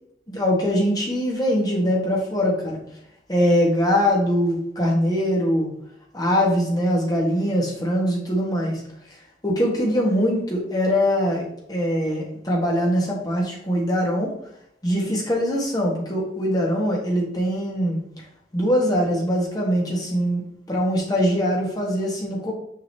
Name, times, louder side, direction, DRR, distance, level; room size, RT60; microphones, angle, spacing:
voice 1, 0.3-2.8 3.3-5.7 6.1-8.7 9.4-14.3 14.8-18.0 18.5-20.4 20.7-22.5, equal, 20° left, -2 dB, 1.7 m, -22 dB
6.2 x 5.6 x 2.9 m, 0.74 s
head